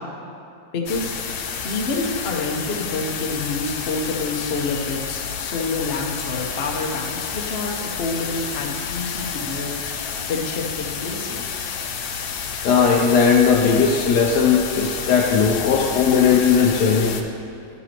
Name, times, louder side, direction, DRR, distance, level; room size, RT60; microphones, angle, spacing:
voice 1, 0.7-1.1 1.6-9.7 10.3-11.5, left 3 dB, 50° left, 1 dB, 0.8 m, -27 dB
sound 1, 0.9-17.2, left 6 dB, 85° left, 1.4 m, -30 dB
voice 2, 12.6-17.2, left 6 dB, 70° left, 1 dB, 1.1 m, -17 dB
12.5 x 7.1 x 2.9 m, 2.6 s
omnidirectional pair, 2.1 m